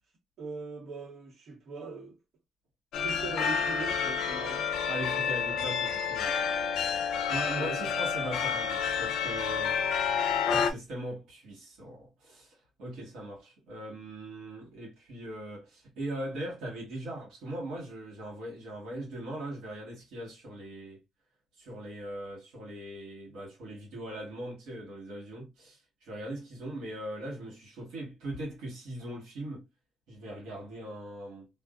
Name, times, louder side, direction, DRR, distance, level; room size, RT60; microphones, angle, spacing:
voice 1, 0.4-2.2 3.0-4.7 7.5-7.8, right 4 dB, 60° right, 1.3 m, -40 dB
sound 1, 2.9-10.7, left 6 dB, 80° left, 0.4 m, -29 dB
voice 2, 4.9-6.4 7.3-9.8 10.5-21.0 21.6-29.6 30.1-31.5, right 1 dB, 90° right, 1.4 m, -40 dB
2.5 x 2.3 x 2.4 m
cardioid pair, 90°, 0 cm